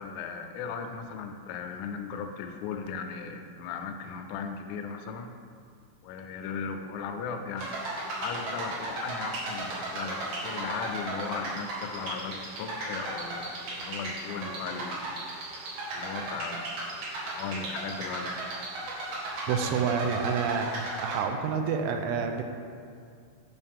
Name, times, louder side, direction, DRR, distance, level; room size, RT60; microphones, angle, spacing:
voice 1, 0.0-5.3 6.0-7.8 8.2-15.2 15.9-16.7 17.3-18.4, left 6 dB, 85° left, 5 dB, 3.2 m, -37 dB
sound 1, 7.6-21.2, right 2 dB, 60° right, 3.0 m, -36 dB
voice 2, 19.5-20.7 21.0-22.4, right 6 dB, 85° right, 5 dB, 3.0 m, -28 dB
11.0 x 5.6 x 3.5 m, 2.3 s
omnidirectional pair, 5.7 m